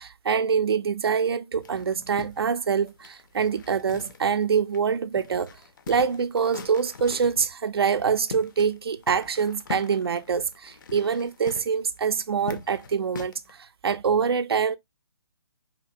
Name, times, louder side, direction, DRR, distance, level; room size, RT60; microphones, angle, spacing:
voice 1, 0.0-5.5 5.9-13.6 13.8-14.8, right 6 dB, 60° right, 0.4 m, -25 dB
sound 1, 1.6-4.4 4.7-4.8 5.2-7.4 8.0-8.8 9.0-13.5, left 5 dB, 45° left, 0.4 m, -41 dB
2.7 x 2.4 x 2.5 m
figure-of-eight pair, 140°, 14 cm